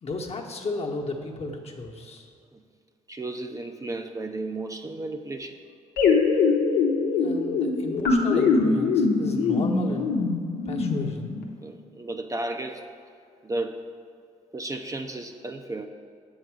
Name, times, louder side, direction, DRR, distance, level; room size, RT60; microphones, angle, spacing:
voice 1, 0.0-2.3 7.2-10.1 10.6-11.3, left 3 dB, 45° left, 0 dB, 1.1 m, -34 dB
voice 2, 3.1-5.6 11.6-12.8 13.4-13.8 14.5-15.9, right 2 dB, 25° right, 5 dB, 0.6 m, -33 dB
sound 1, 6.0-11.4, left 4 dB, 80° left, 0.9 m, -23 dB
7.7 x 4.0 x 6.2 m, 2.4 s
supercardioid pair, 55°, 15 cm